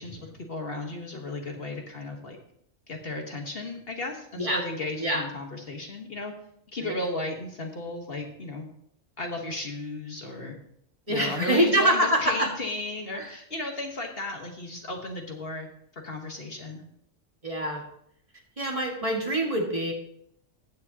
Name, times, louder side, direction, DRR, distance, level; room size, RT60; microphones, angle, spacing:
voice 1, 0.0-2.4 2.9-6.3 6.7-8.7 9.2-10.6 11.1-15.7 15.9-16.8, left 2 dB, 50° left, 3 dB, 1.5 m, -35 dB
voice 2, 11.1-12.5 13.1-13.3 17.4-17.8 18.6-19.9, right 1 dB, 25° right, 0 dB, 1.9 m, -25 dB
14.5 x 9.7 x 2.9 m, 0.72 s
omnidirectional pair, 1.3 m